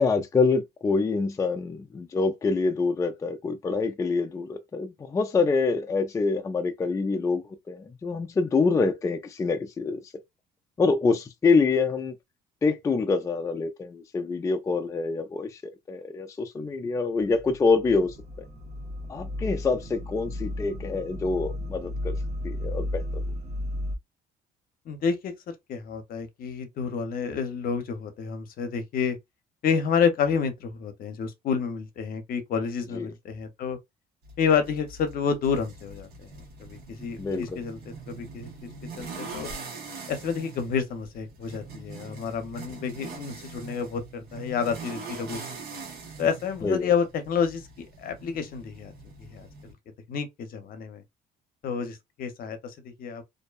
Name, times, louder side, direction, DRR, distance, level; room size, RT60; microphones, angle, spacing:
voice 1, 0.0-10.0 10.8-12.1 12.6-18.1 19.1-22.2 22.4-23.0 32.9-33.1 37.2-37.6 46.6-46.9, left 4 dB, 20° left, 0.4 m, -26 dB
sound 1, 17.2-24.0, left 1 dB, 40° right, 0.6 m, -34 dB
voice 2, 24.9-29.2 29.6-33.8 34.4-36.3 36.6-37.8 38.1-38.7 39.0-39.5 40.1-45.4 46.2-48.9 49.2-49.7 50.1-51.0 51.6-53.2, left 6 dB, 60° left, 0.7 m, -29 dB
sound 2, 34.2-49.7, right 4 dB, 70° right, 1.0 m, -43 dB
2.5 x 2.1 x 2.3 m
cardioid pair, 110°, 17 cm